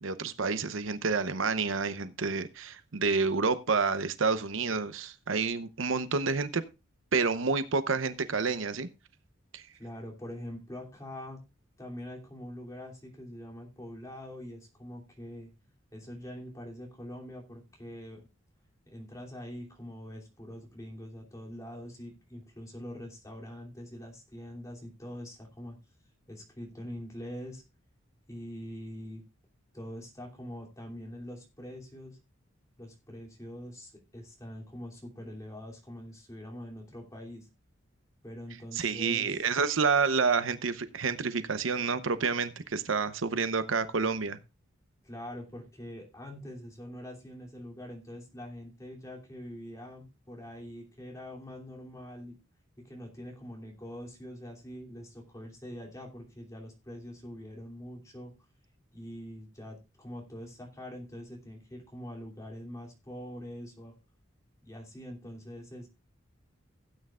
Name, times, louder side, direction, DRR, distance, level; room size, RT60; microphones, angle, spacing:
voice 1, 0.0-6.6 7.1-8.9 9.5-9.6 38.7-44.4, right 4 dB, 75° right, 0.8 m, -29 dB
voice 2, 9.8-11.4 11.8-15.5 15.9-18.3 18.9-25.8 26.3-27.6 28.3-29.2 29.7-32.2 32.8-37.5 38.2-39.5 45.0-52.4 52.8-58.3 58.9-63.9 64.6-65.9, equal, 15° left, 2.9 m, -44 dB
16.5 x 9.0 x 2.4 m
head